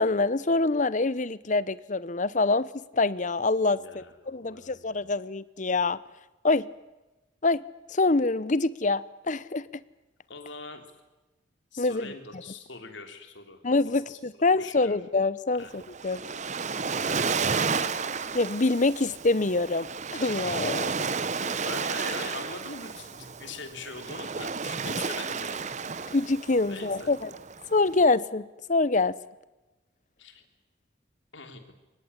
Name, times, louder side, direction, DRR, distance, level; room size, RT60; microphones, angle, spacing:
voice 1, 0.0-6.0 6.4-6.7 7.4-7.6 7.9-9.6 11.8-12.1 13.6-16.2 18.3-21.1 26.1-27.3 27.7-29.1, left 3 dB, 40° left, 18 dB, 0.8 m, -25 dB
voice 2, 3.7-5.1 10.3-10.8 11.7-15.0 15.6-15.8 17.4-18.1 21.4-25.9 26.6-27.2 30.2-30.4 31.3-31.7, left 4 dB, 75° left, 6 dB, 3.5 m, -43 dB
Waves surf, 15.6-28.0, right 5 dB, 40° right, 1.0 m, -32 dB
24.0 x 20.0 x 9.9 m, 1.1 s
head